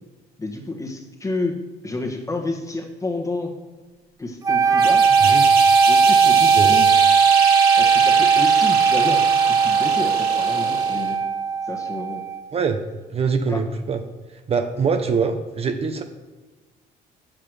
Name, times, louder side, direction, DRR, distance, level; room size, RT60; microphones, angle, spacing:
voice 1, 0.4-3.5 4.2-5.1 5.9-6.9 7.8-11.2 11.7-12.2 13.5-13.6, left 2 dB, 20° left, 3 dB, 1.4 m, -30 dB
sound 1, 4.4-12.5, right 6 dB, 20° right, 0.4 m, -17 dB
sound 2, 4.8-11.1, right 5 dB, 65° right, 1.7 m, -27 dB
voice 2, 6.5-6.8 12.5-12.8 13.1-14.0 14.5-16.0, right 5 dB, 35° right, 6 dB, 0.8 m, -23 dB
7.7 x 7.2 x 4.9 m, 1.3 s
cardioid pair, 110°, 17 cm